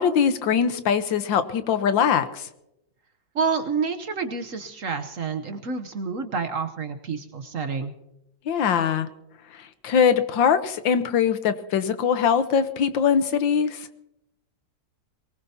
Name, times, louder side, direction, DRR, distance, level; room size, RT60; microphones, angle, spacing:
voice 1, 0.0-2.4 8.5-9.1 9.8-13.8, left 7 dB, 80° left, 11 dB, 1.7 m, -22 dB
voice 2, 3.3-7.9, right 5 dB, 50° right, 8 dB, 1.1 m, -28 dB
22.5 x 19.5 x 2.8 m, 0.88 s
omnidirectional pair, 2.0 m